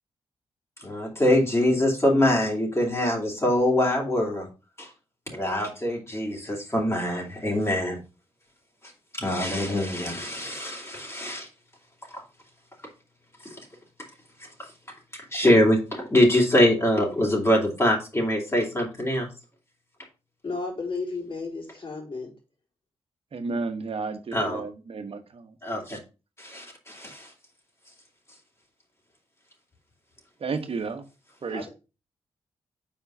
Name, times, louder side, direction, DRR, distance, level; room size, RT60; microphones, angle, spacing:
voice 1, 0.8-4.5 4.8-4.9 5.3-8.0 9.1-11.5 12.1-12.2 13.4-13.6 15.1-19.3 24.3-24.6 25.6-26.0 26.4-27.3, left 1 dB, 25° left, -1 dB, 2.8 m, -24 dB
voice 2, 20.4-22.3 31.5-31.7, left 3 dB, 50° left, -1 dB, 4.1 m, -33 dB
voice 3, 23.3-25.2 30.4-31.0 31.4-31.7, right 4 dB, 55° right, 8 dB, 1.3 m, -31 dB
5.6 x 4.5 x 5.6 m, 0.31 s
cardioid pair, 55°, 11 cm